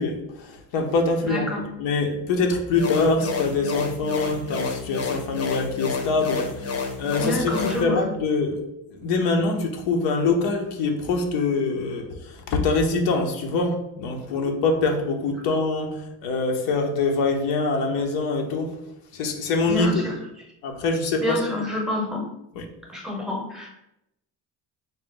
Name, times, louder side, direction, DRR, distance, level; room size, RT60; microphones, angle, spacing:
voice 1, 0.0-1.5 1.8-18.8 19.1-20.0 20.6-21.4 22.6-22.7, left 3 dB, 80° left, 2 dB, 0.8 m, -24 dB
voice 2, 1.3-1.6 7.2-8.0 14.3-14.4 19.7-20.2 21.2-22.2 22.9-23.7, left 2 dB, ahead, 0 dB, 0.8 m, -28 dB
sound 1, 2.7-7.8, left 5 dB, 35° left, 0.7 m, -30 dB
4.0 x 2.2 x 3.7 m, 0.82 s
supercardioid pair, 85°, 43 cm